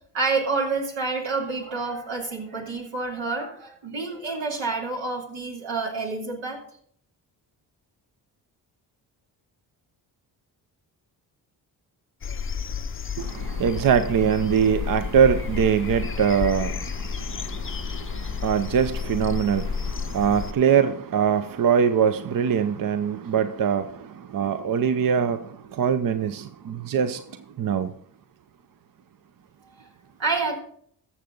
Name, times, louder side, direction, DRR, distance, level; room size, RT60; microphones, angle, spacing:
voice 1, 0.1-6.6 29.6-29.9 30.2-30.6, right 3 dB, 80° right, 2.8 m, -28 dB
sound 1, 12.2-20.5, left 6 dB, 30° left, 0.6 m, -31 dB
voice 2, 13.2-16.8 18.4-23.9 24.3-25.4 25.8-27.2 27.6-27.9, right 7 dB, 45° right, 0.7 m, -22 dB
14.0 x 6.8 x 3.8 m
supercardioid pair, 50°, 45 cm